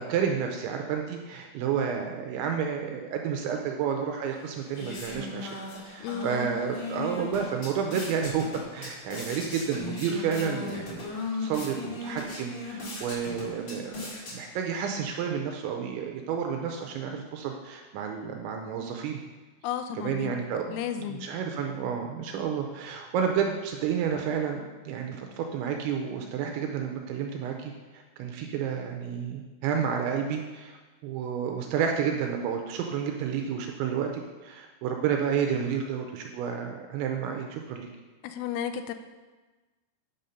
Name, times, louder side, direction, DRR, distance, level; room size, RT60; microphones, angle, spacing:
voice 1, 0.0-5.5 5.9-8.5 8.7-11.0 11.4-19.2 20.0-30.8 31.0-37.9, right 7 dB, 85° right, 3 dB, 2.8 m, -30 dB
sound 1, 4.3-14.8, left 3 dB, 65° left, 1.3 m, -38 dB
voice 2, 6.0-6.5 19.6-21.3 38.2-38.9, left 9 dB, 90° left, 8 dB, 3.2 m, -34 dB
9.3 x 5.6 x 5.3 m, 1.3 s
omnidirectional pair, 5.8 m